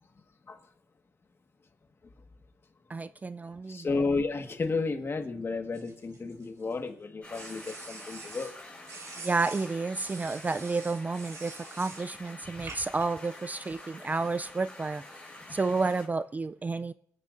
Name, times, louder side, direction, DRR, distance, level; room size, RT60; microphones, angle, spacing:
voice 1, 2.9-4.0 9.2-15.0 15.5-16.9, right 3 dB, 25° right, 0.3 m, -31 dB
voice 2, 3.7-8.5, left 3 dB, 35° left, 1.5 m, -32 dB
sound 1, 5.7-6.7 7.3-8.5 8.9-12.1 12.7-13.1, right 4 dB, 50° right, 3.8 m, -46 dB
sound 2, 7.2-16.1, left 2 dB, 15° left, 4.8 m, -48 dB
25.5 x 9.1 x 2.5 m
cardioid pair, 100°, 7 cm